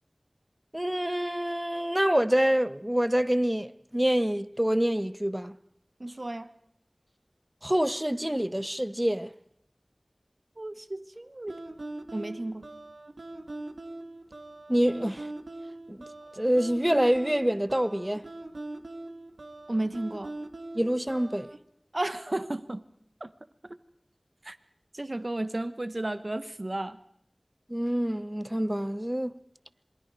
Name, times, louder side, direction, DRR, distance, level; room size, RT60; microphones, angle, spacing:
voice 1, 0.7-5.5 7.6-9.3 14.7-15.3 15.9-16.1 16.4-18.3 20.7-21.5 27.7-29.3, equal, 15° right, 0.8 m, -26 dB
voice 2, 6.0-6.5 10.6-11.6 12.1-12.7 19.7-20.3 21.9-22.8 23.2-23.3 24.4-24.6 24.9-27.0, right 1 dB, 50° right, 1.2 m, -33 dB
sound 1, 11.5-21.6, right 2 dB, 85° right, 1.6 m, -42 dB
27.0 x 24.0 x 4.8 m
wide cardioid pair, 45°, 0 cm